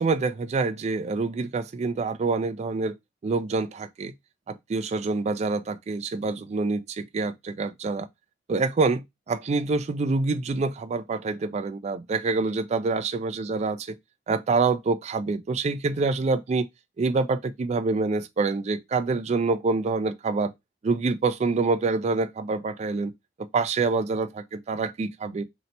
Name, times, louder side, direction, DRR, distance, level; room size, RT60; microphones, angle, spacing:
voice 1, 0.0-2.9 3.2-4.1 4.5-8.1 8.5-14.0 14.3-16.7 17.0-20.5 20.8-23.1 23.5-25.4, right 3 dB, 40° right, 0.3 m, -26 dB
2.8 x 2.1 x 3.9 m
head